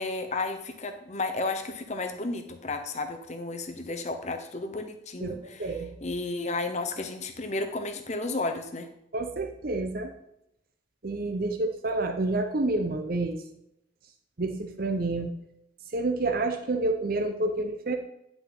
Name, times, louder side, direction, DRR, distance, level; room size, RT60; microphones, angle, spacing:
voice 1, 0.0-8.9, left 3 dB, 35° left, 6 dB, 0.9 m, -33 dB
voice 2, 5.2-5.9 9.1-10.1 11.0-13.4 14.4-15.3 15.9-17.9, right 2 dB, 45° right, 5 dB, 0.8 m, -29 dB
9.9 x 6.0 x 4.0 m, 0.81 s
head